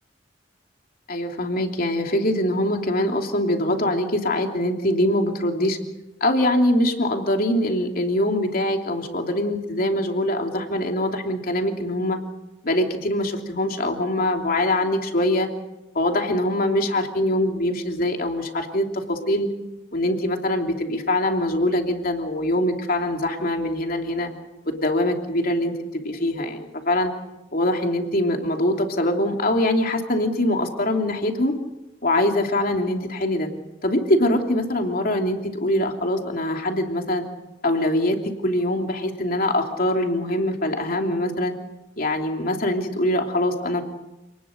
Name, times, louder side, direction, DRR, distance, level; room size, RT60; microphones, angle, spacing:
voice 1, 1.1-5.8 6.2-12.2 12.6-15.5 15.9-19.5 19.9-24.3 24.7-27.1 27.5-31.5 32.0-33.5 33.8-37.2 37.6-41.5 42.0-43.8, left 1 dB, 55° left, 3 dB, 3.0 m, -23 dB
28.5 x 19.5 x 6.6 m, 0.98 s
head